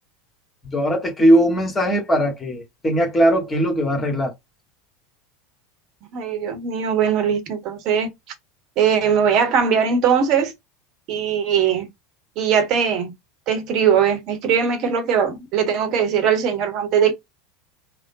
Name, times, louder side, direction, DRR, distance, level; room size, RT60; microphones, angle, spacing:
voice 1, 0.6-4.3, equal, 15° left, 1.4 m, -19 dB
voice 2, 6.1-8.1 8.8-10.5 11.1-11.9 12.4-13.1 13.5-17.1, right 7 dB, 45° right, 1.0 m, -20 dB
3.5 x 2.1 x 2.7 m
figure-of-eight pair, 80°, 0 cm